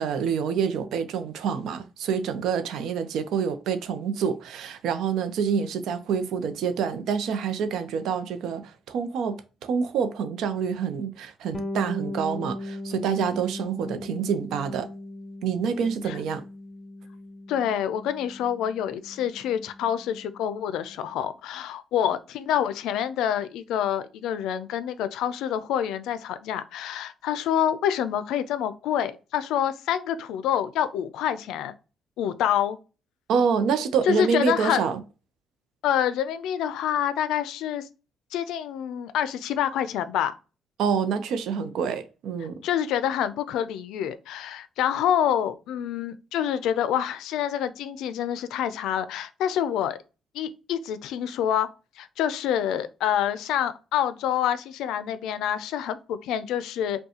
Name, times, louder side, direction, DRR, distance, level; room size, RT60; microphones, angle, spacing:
voice 1, 0.0-8.6 8.9-14.9 15.4-16.4 33.3-35.0 40.8-42.6, right 6 dB, 80° right, 0.5 m, -27 dB
Bass guitar, 11.5-21.2, left 1 dB, 30° left, 0.6 m, -39 dB
voice 2, 17.5-31.7 32.2-32.8 34.1-34.8 35.8-37.9 38.3-40.3 42.6-50.0 50.3-51.7 52.0-57.0, left 10 dB, 90° left, 0.4 m, -27 dB
5.3 x 2.2 x 2.8 m
cardioid pair, 90°, 0 cm